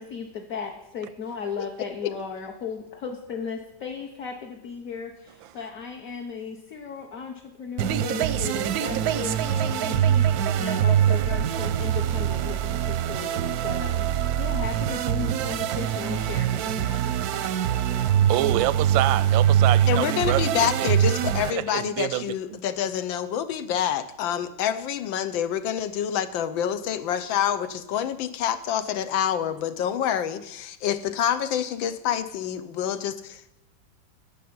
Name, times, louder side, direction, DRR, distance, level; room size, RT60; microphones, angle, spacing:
voice 1, 0.0-18.2, left 6 dB, 50° left, 1.5 m, -36 dB
sound 1, 7.8-21.5, right 10 dB, 70° right, 1.0 m, -24 dB
voice 2, 18.3-20.9 21.5-22.2 22.5-22.6, right 14 dB, 90° right, 1.4 m, -27 dB
voice 3, 19.9-33.6, left 9 dB, 85° left, 1.6 m, -27 dB
10.5 x 7.0 x 9.5 m
omnidirectional pair, 2.0 m